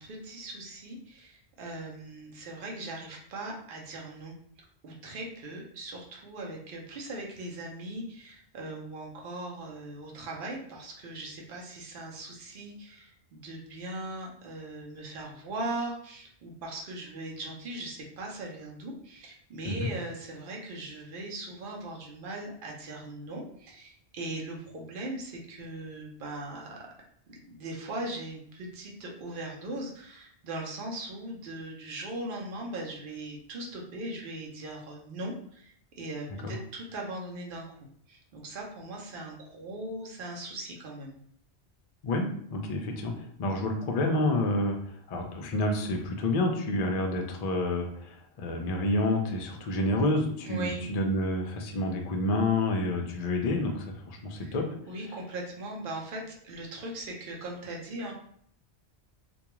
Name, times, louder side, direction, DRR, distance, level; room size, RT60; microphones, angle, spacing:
voice 1, 0.0-4.3 4.8-26.8 27.3-37.6 38.1-41.2 50.4-50.8 54.4-54.6 54.9-58.1, right 1 dB, 55° right, -1 dB, 0.8 m, -39 dB
voice 2, 42.0-43.1 43.4-44.8 45.1-54.7, left 2 dB, 60° left, 2 dB, 0.4 m, -29 dB
2.3 x 2.2 x 2.9 m, 0.64 s
omnidirectional pair, 1.1 m